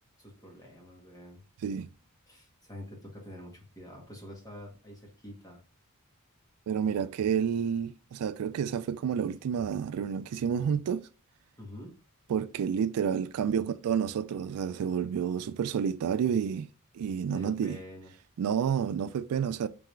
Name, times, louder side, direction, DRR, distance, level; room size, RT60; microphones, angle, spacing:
voice 1, 0.2-1.4 2.3-5.6 11.6-12.0 17.3-18.1, equal, 15° left, 1.4 m, -46 dB
voice 2, 6.7-11.1 12.3-16.7 16.9-17.8 18.4-19.7, right 7 dB, 80° right, 0.3 m, -30 dB
3.8 x 3.5 x 3.2 m
head